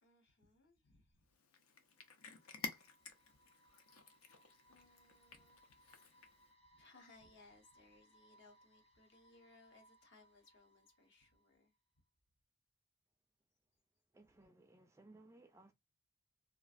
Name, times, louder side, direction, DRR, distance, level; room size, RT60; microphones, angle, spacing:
voice 1, 0.0-1.2 3.3-3.4 4.6-6.4 6.7-11.7, left 3 dB, 55° left, 1.0 m, -66 dB
Cat, 1.3-6.5, left 4 dB, 85° left, 0.7 m, -52 dB
sound 1, 1.7-11.8, right 1 dB, 30° left, 1.2 m, -71 dB
voice 2, 14.1-15.7, right 2 dB, 15° right, 0.3 m, -62 dB
3.0 x 2.5 x 2.5 m
head